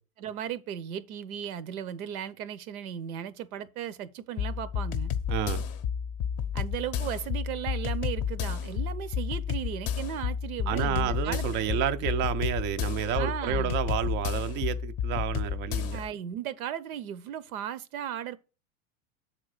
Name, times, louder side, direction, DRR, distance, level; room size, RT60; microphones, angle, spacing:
voice 1, 0.2-5.1 6.5-11.5 13.2-13.8 15.9-18.4, right 10 dB, 75° right, 0.9 m, -36 dB
sound 1, 4.4-16.1, left 8 dB, 35° left, 0.6 m, -31 dB
voice 2, 5.3-5.7 10.7-16.0, right 9 dB, 25° right, 0.4 m, -30 dB
7.1 x 3.8 x 6.4 m
hypercardioid pair, 115°, 43 cm